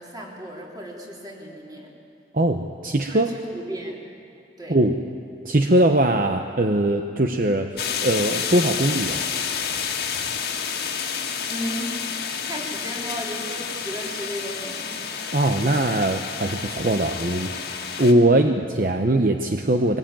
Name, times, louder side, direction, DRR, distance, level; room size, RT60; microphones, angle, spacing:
voice 1, 0.0-1.9 3.1-4.0 4.6-4.8 11.5-15.0 15.4-16.1 18.3-18.5, equal, 20° right, -2 dB, 3.7 m, -35 dB
voice 2, 2.3-3.3 4.7-5.0 5.4-9.3 15.3-17.5 18.0-20.0, right 1 dB, 50° right, 5 dB, 0.8 m, -21 dB
sound 1, 7.8-18.1, left 7 dB, 60° left, 1.8 m, -29 dB
22.0 x 17.5 x 9.0 m, 2.5 s
head